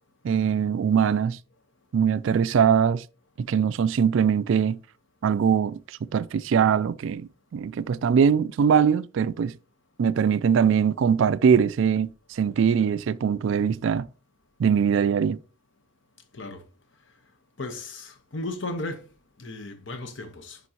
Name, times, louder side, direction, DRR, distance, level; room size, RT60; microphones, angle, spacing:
voice 1, 0.2-1.4 1.9-3.0 3.4-4.8 5.2-9.5 10.0-14.1 14.6-15.4, right 7 dB, 65° right, 0.3 m, -22 dB
voice 2, 17.6-19.1 19.4-20.6, left 2 dB, 60° left, 1.0 m, -35 dB
10.5 x 3.8 x 2.8 m
head